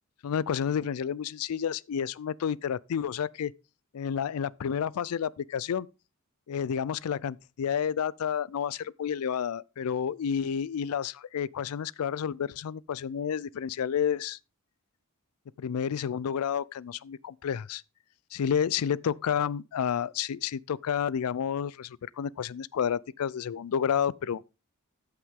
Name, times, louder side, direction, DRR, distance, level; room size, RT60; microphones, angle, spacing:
voice 1, 0.2-3.5 3.9-5.9 6.5-14.4 15.6-17.8 18.3-24.4, left 8 dB, 85° left, 0.4 m, -30 dB
13.5 x 5.8 x 3.6 m
head